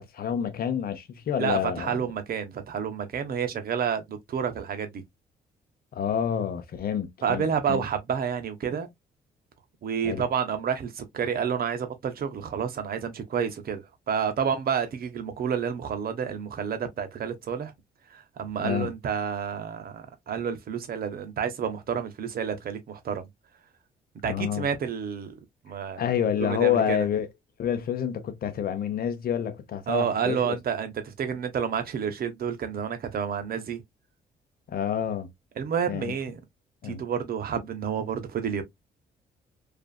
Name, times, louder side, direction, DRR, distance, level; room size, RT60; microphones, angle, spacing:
voice 1, 0.0-1.9 5.9-7.8 10.0-10.2 18.6-18.9 24.2-24.7 26.0-27.3 27.6-30.6 34.7-35.3 35.9-36.1 36.8-37.0, left 9 dB, 60° left, 0.6 m, -28 dB
voice 2, 1.4-5.0 7.2-8.9 9.8-17.7 18.1-23.3 24.2-25.4 25.6-26.0 26.4-27.1 29.9-33.8 35.6-36.4 36.8-38.6, right 7 dB, 55° right, 0.7 m, -29 dB
2.5 x 2.4 x 2.2 m
cardioid pair, 70°, 18 cm